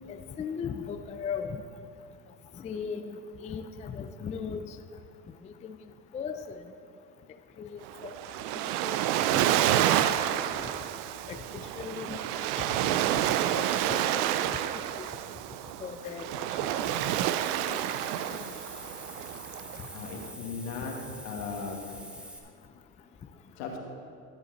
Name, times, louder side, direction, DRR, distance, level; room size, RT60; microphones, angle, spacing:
voice 1, 0.1-1.6 2.6-3.2 3.4-4.6 5.6-5.8 6.1-6.6 7.6-8.1 8.8-9.0 9.3-10.1 11.3-11.4 11.8-13.0 13.9-14.2 15.0-15.1 15.8-16.3 16.6-17.0 17.7-17.8, left 6 dB, 15° left, 8 dB, 0.3 m, -37 dB
Waves surf, 7.9-20.3, right 12 dB, 80° right, 0.6 m, -29 dB
Hiss, 16.6-22.4, equal, ahead, 1.1 m, -46 dB
voice 2, 19.9-20.9 21.2-21.8 23.6-23.8, left 5 dB, 75° left, 1 dB, 2.0 m, -37 dB
14.0 x 7.7 x 4.0 m, 2.4 s
supercardioid pair, 105°, 45 cm